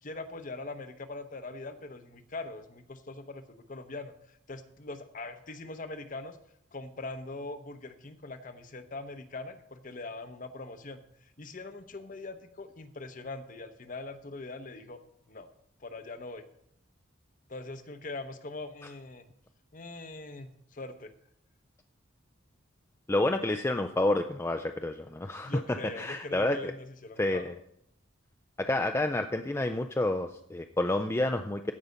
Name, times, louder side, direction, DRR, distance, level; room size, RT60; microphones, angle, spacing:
voice 1, 0.0-6.4 6.7-15.0 15.3-15.5 15.8-16.4 17.5-19.2 19.7-21.1 25.4-27.5, left 2 dB, 40° left, 9 dB, 0.8 m, -42 dB
voice 2, 23.1-25.6 26.0-26.7 27.2-27.5 28.6-31.7, left 1 dB, 10° left, 6 dB, 0.3 m, -29 dB
15.0 x 5.6 x 5.2 m, 0.74 s
head